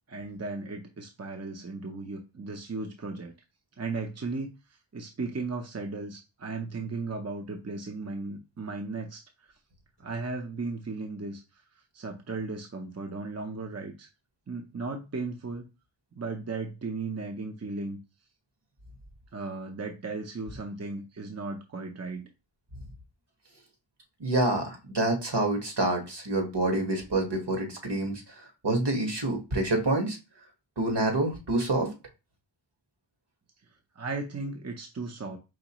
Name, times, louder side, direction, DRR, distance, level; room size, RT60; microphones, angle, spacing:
voice 1, 0.1-3.3 3.8-9.5 10.0-14.1 14.5-15.6 16.1-18.0 19.3-22.3 34.0-35.4, right 3 dB, 35° right, 3 dB, 0.7 m, -36 dB
voice 2, 24.2-30.2 30.8-31.9, right 2 dB, 65° right, 2 dB, 1.5 m, -27 dB
5.0 x 3.2 x 3.0 m, 0.28 s
wide cardioid pair, 40°, 45 cm